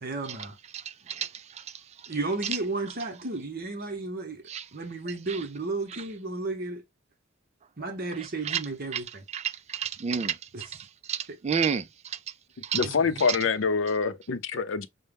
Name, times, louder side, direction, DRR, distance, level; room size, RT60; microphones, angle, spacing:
voice 1, 0.0-0.6 2.1-4.4 4.7-6.8 7.8-9.2 10.5-10.7 11.3-11.4 12.8-12.9, right 3 dB, 50° right, 0.9 m, -33 dB
voice 2, 9.7-10.4 11.1-11.8 12.7-12.8, right 7 dB, 35° right, 0.3 m, -28 dB
voice 3, 12.7-14.9, left 5 dB, 65° left, 0.6 m, -26 dB
5.4 x 2.1 x 3.4 m
head